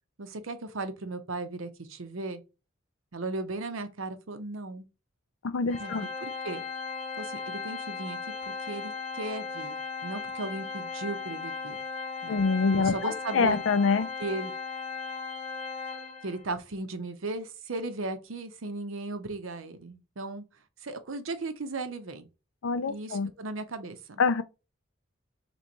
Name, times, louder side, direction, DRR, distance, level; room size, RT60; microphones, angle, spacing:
voice 1, 0.2-2.4 3.1-4.9 5.8-6.6 7.2-8.2 8.7-9.8 10.0-11.8 12.2-12.4 12.8-13.6 14.2-14.5 16.2-20.4 20.8-22.3 22.9-24.2, right 2 dB, 75° right, 0.7 m, -36 dB
voice 2, 5.4-6.1 12.3-14.1 22.6-23.3 24.2-24.4, left 4 dB, 65° left, 0.5 m, -25 dB
Organ, 5.7-16.4, left 5 dB, 30° left, 0.9 m, -37 dB
3.3 x 3.1 x 3.9 m
head